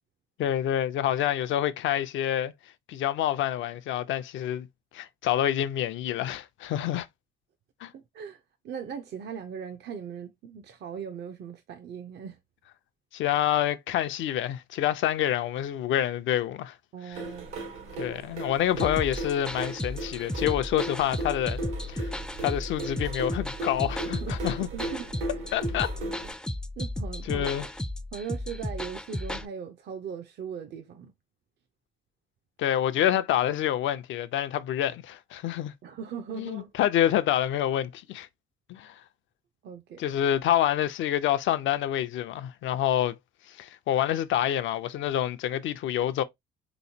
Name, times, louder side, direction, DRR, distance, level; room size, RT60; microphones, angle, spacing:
voice 1, 0.4-2.5 2.9-4.7 4.9-7.1 7.8-7.9 13.1-16.8 17.1-17.2 18.0-21.6 21.9-22.1 22.4-24.7 25.5-25.9 27.3-27.7 32.6-35.7 36.3-38.3 38.7-39.0 40.0-43.2 43.5-46.2, left 11 dB, 80° left, 0.5 m, -27 dB
voice 2, 7.9-12.4 16.9-17.5 24.0-25.1 26.8-27.5 28.1-31.1 35.8-36.7 39.6-40.0, right 7 dB, 60° right, 0.5 m, -39 dB
sound 1, 17.1-26.3, right 2 dB, 85° right, 1.3 m, -37 dB
sound 2, 18.8-29.5, left 1 dB, 5° left, 0.3 m, -34 dB
3.5 x 3.0 x 2.7 m
cardioid pair, 90°, 20 cm